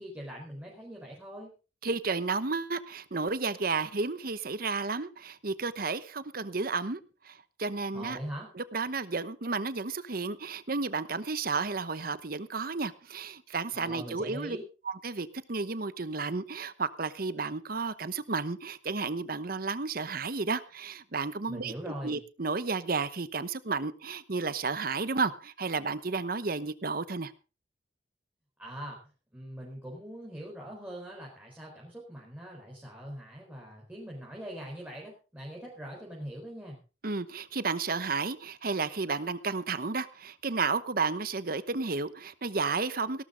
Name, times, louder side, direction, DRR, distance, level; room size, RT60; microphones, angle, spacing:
voice 1, 0.0-1.5 7.9-8.5 13.7-14.6 21.5-22.2 28.6-29.0 29.3-36.8, equal, 10° right, -3 dB, 4.4 m, -42 dB
voice 2, 1.8-7.0 7.2-8.2 8.5-14.6 14.8-27.3 37.0-43.2, right 4 dB, 50° right, 14 dB, 1.0 m, -32 dB
17.5 x 12.5 x 3.8 m, 0.34 s
head